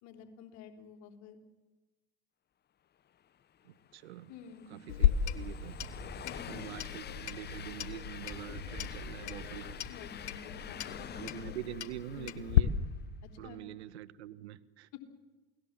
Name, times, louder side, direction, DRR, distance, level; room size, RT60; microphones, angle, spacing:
voice 1, 0.0-1.4 4.3-4.8 6.2-6.5 9.9-11.3 12.1-12.3 13.4-13.6 14.9-15.0, left 7 dB, 55° left, 5 dB, 3.8 m, -50 dB
Train, 3.6-13.0, left 9 dB, 30° left, 0.9 m, -48 dB
voice 2, 3.6-4.3 4.7-5.7 6.5-9.8 11.1-12.7 13.4-14.9, right 13 dB, 75° right, 15 dB, 1.3 m, -45 dB
Clock, 4.9-12.6, left 11 dB, 80° left, 1.2 m, -34 dB
sound 1, 5.6-11.2, right 2 dB, 15° right, 4.4 m, -50 dB
28.5 x 18.5 x 7.6 m, 1.2 s
hypercardioid pair, 80°, 33 cm